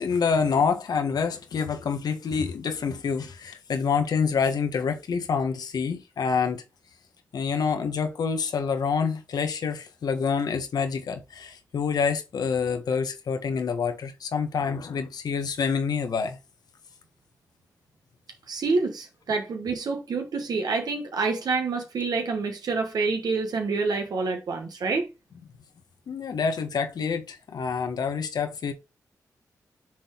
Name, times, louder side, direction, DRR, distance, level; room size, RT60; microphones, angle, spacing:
voice 1, 0.0-6.6 7.3-16.4 26.1-28.7, left 6 dB, 75° left, 1.3 m, -27 dB
voice 2, 18.5-25.1, right 4 dB, 75° right, 1.2 m, -27 dB
6.1 x 3.9 x 4.5 m
cardioid pair, 55°, 7 cm